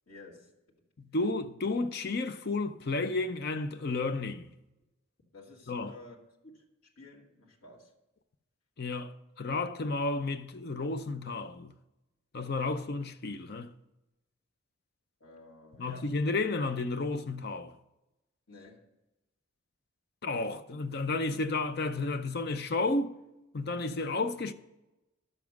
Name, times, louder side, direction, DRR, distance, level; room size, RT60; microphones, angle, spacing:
voice 1, 0.1-0.5 5.3-6.2 6.4-7.9 15.2-16.1 18.5-18.9, left 2 dB, 80° left, 2.2 m, -52 dB
voice 2, 1.0-4.5 5.7-5.9 8.8-9.1 9.4-11.7 12.3-13.7 15.8-17.7 20.2-23.1 23.5-24.5, left 3 dB, 45° left, 0.5 m, -32 dB
11.0 x 7.2 x 6.0 m
head